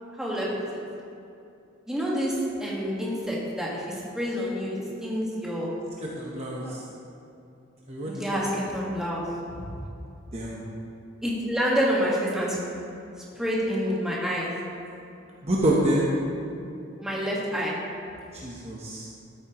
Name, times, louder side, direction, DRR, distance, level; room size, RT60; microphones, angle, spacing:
voice 1, 1.9-3.8 4.1-5.7 6.6-6.7 8.0-9.2 9.5-9.7 11.2-12.5 13.4-14.5 17.0-17.7, equal, 5° right, -6 dB, 1.6 m, -28 dB
voice 2, 6.2-6.8 7.9-8.1 10.3-10.6 15.4-16.1 18.3-19.1, right 1 dB, 30° right, -4 dB, 1.0 m, -26 dB
13.5 x 8.7 x 3.1 m, 2.7 s
head